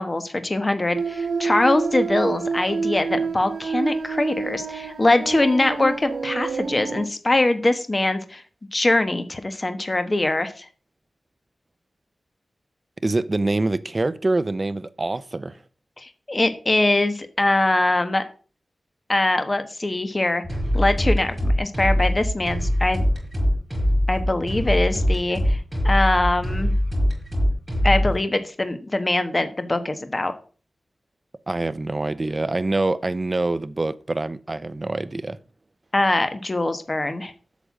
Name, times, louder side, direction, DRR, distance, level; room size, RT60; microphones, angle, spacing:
voice 1, 0.0-8.4 8.7-10.7 16.0-18.2 19.1-20.4 20.7-23.0 24.1-26.7 27.8-30.3 35.9-37.3, left 2 dB, 30° left, 1.3 m, -22 dB
sound 1, 0.9-7.1, right 5 dB, 80° right, 0.8 m, -28 dB
voice 2, 13.0-15.6 31.5-35.4, right 2 dB, 30° right, 0.6 m, -25 dB
sound 2, 20.4-28.2, equal, 15° right, 6.1 m, -22 dB
8.3 x 6.7 x 7.4 m
wide cardioid pair, 110°, 0 cm